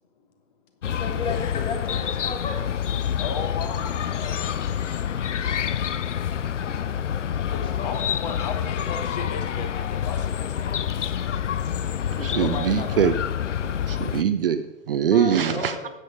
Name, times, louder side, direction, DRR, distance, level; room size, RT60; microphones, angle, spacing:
Chirp tweet, 0.8-14.2, left 9 dB, 65° left, 0.6 m, -27 dB
voice 1, 1.0-2.6 7.5-8.0 15.1-15.9, left 4 dB, 15° left, 3 dB, 1.4 m, -33 dB
voice 2, 3.2-5.2 7.5-11.6 12.4-13.2, left 5 dB, 30° left, 6 dB, 1.2 m, -36 dB
voice 3, 12.2-13.1 13.6-15.7, right 8 dB, 45° right, 9 dB, 0.6 m, -23 dB
9.8 x 7.8 x 5.0 m, 0.97 s
figure-of-eight pair, 115°, 39 cm